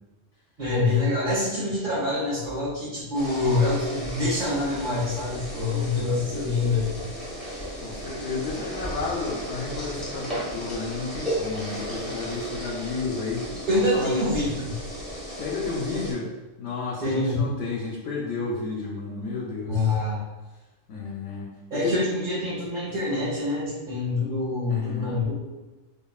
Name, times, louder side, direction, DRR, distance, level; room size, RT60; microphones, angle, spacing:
voice 1, 0.6-6.9 13.7-14.7 17.0-17.4 19.7-20.2 21.7-25.3, left 2 dB, 40° right, -9 dB, 1.3 m, -25 dB
sound 1, 3.1-16.1, equal, ahead, 1.3 m, -35 dB
voice 2, 5.9-6.4 7.8-13.5 13.9-14.1 15.3-16.3 16.6-19.9 20.9-22.2 24.7-25.1, left 4 dB, 70° left, -2 dB, 0.9 m, -32 dB
5.2 x 2.4 x 2.3 m, 1.1 s
omnidirectional pair, 1.3 m